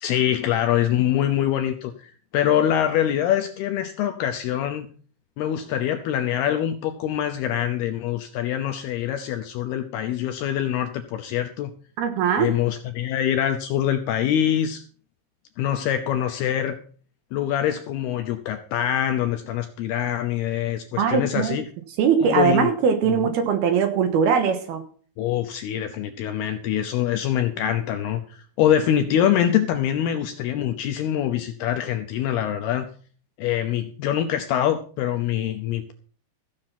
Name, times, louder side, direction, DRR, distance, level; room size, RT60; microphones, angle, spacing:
voice 1, 0.0-4.9 5.4-11.7 12.4-14.8 15.6-16.8 17.3-21.6 22.2-22.7 23.1-23.3 25.2-32.9 33.4-35.9, left 10 dB, 80° left, 2.4 m, -24 dB
voice 2, 12.0-12.5 21.0-21.6 22.0-24.8, right 7 dB, 70° right, 2.9 m, -21 dB
15.5 x 7.6 x 5.8 m
omnidirectional pair, 5.4 m